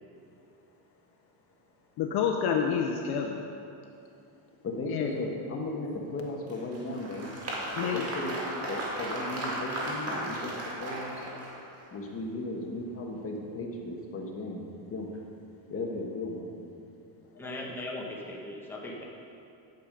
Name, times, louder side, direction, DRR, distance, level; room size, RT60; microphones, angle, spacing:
voice 1, 2.0-3.4 4.8-5.1 7.8-8.0, left 7 dB, 50° left, 3 dB, 0.7 m, -28 dB
voice 2, 4.6-7.3 7.8-11.3 11.9-15.2 15.7-16.5 17.3-17.6, left 2 dB, 25° left, 0 dB, 1.3 m, -36 dB
Applause, 6.5-11.8, right 1 dB, 30° right, 2.0 m, -35 dB
voice 3, 17.4-19.0, left 1 dB, 5° left, -3 dB, 1.2 m, -38 dB
10.5 x 7.0 x 5.2 m, 2.7 s
cardioid pair, 140°, 49 cm